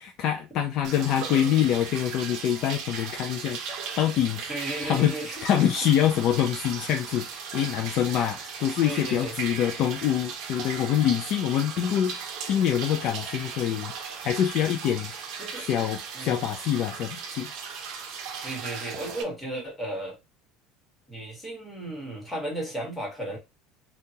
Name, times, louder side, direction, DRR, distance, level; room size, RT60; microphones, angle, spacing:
voice 1, 0.0-3.6 4.0-4.5 4.8-5.1 5.4-13.9 14.2-15.1 15.6-17.5, left 10 dB, 45° left, 0.4 m, -25 dB
sound 1, 0.8-19.2, right 6 dB, 55° right, 0.8 m, -37 dB
voice 2, 4.5-5.4 8.8-9.3 15.4-15.7 16.1-16.4 18.4-20.2 21.1-23.4, right 1 dB, 10° left, 1.4 m, -34 dB
3.6 x 2.3 x 2.8 m
cardioid pair, 155°, 0 cm